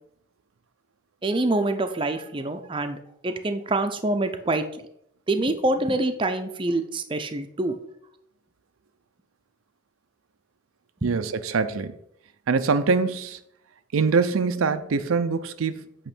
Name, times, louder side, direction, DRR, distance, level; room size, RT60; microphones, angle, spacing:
voice 1, 1.2-3.0 3.2-4.9 5.3-7.8 11.0-11.1, right 2 dB, 25° right, 0.5 m, -26 dB
voice 2, 11.0-11.9 12.5-13.4 13.9-16.1, right 4 dB, 90° right, 0.5 m, -24 dB
8.8 x 3.1 x 6.0 m
head